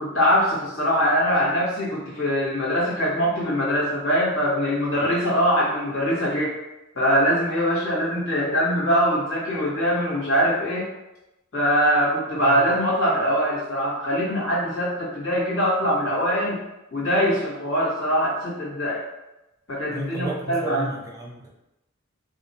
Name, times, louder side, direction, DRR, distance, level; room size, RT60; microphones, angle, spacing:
voice 1, 0.0-6.5 6.9-10.9 11.5-16.6 16.9-19.0 19.7-20.9, equal, 65° left, -8 dB, 1.1 m, -22 dB
voice 2, 12.4-12.9 19.9-21.5, right 2 dB, 15° right, -1 dB, 0.4 m, -33 dB
2.7 x 2.4 x 2.5 m, 0.96 s
head